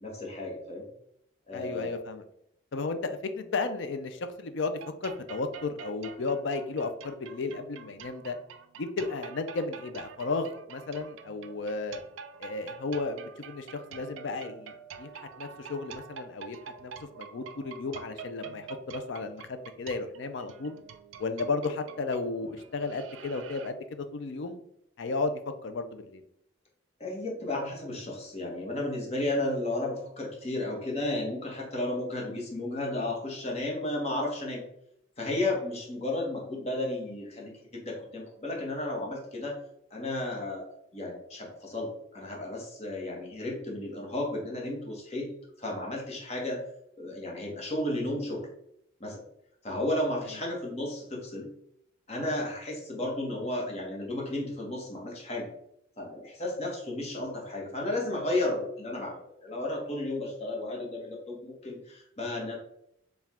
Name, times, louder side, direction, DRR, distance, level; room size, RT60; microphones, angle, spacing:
voice 1, 0.0-0.9 1.5-1.9 27.0-34.6 35.2-39.6 39.9-40.6 40.9-45.3 45.6-46.6 47.0-48.5 49.0-49.2 49.6-51.5 52.1-55.5 56.0-62.6, left 1 dB, 30° left, -2 dB, 0.9 m, -33 dB
voice 2, 1.5-2.2 2.7-8.4 8.8-12.0 12.4-15.1 15.4-16.9 17.2-20.8 21.2-24.6 25.0-26.2, left 3 dB, 65° left, 9 dB, 0.4 m, -34 dB
sound 1, 4.8-23.7, right 6 dB, 75° right, 0.4 m, -47 dB
4.6 x 2.3 x 3.5 m, 0.74 s
head